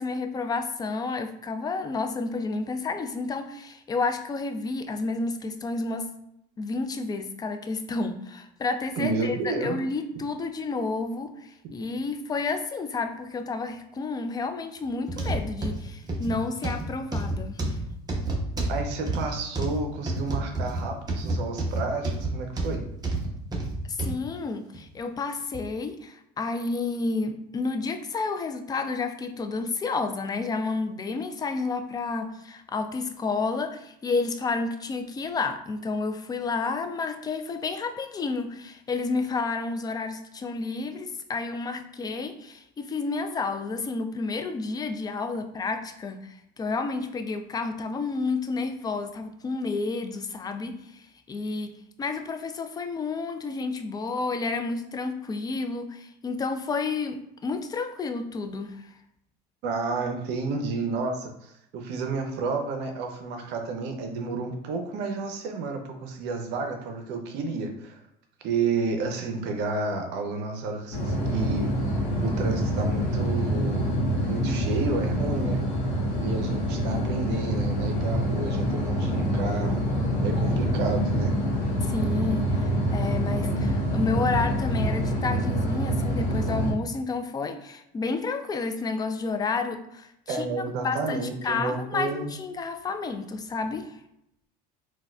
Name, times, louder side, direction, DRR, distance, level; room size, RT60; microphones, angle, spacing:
voice 1, 0.0-6.1 6.6-17.8 23.9-58.8 81.8-90.4 90.8-94.0, left 3 dB, 20° left, 7 dB, 0.4 m, -30 dB
voice 2, 9.0-9.8 18.7-22.8 59.6-68.0 68.4-71.7 72.2-73.9 74.3-75.6 76.2-79.8 80.2-81.3 90.3-92.3, right 3 dB, 65° right, 4 dB, 0.6 m, -31 dB
sound 1, 15.1-24.2 24.7-24.9 25.5-25.6, right 2 dB, 20° right, 0.8 m, -29 dB
sound 2, 70.9-86.7, equal, 80° left, 0.9 m, -26 dB
4.0 x 2.2 x 2.3 m, 0.78 s
supercardioid pair, 90°, 20 cm